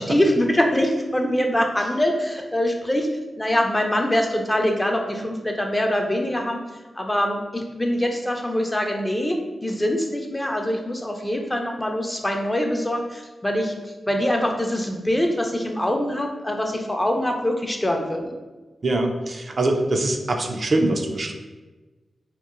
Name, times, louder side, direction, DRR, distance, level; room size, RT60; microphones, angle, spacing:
voice 1, 0.0-3.1 3.4-6.6 7.0-18.3, left 1 dB, 20° left, 3 dB, 0.4 m, -24 dB
voice 2, 18.8-21.3, right 2 dB, 55° right, 3 dB, 0.3 m, -23 dB
2.8 x 2.0 x 2.4 m, 1.2 s
cardioid pair, 45°, 0 cm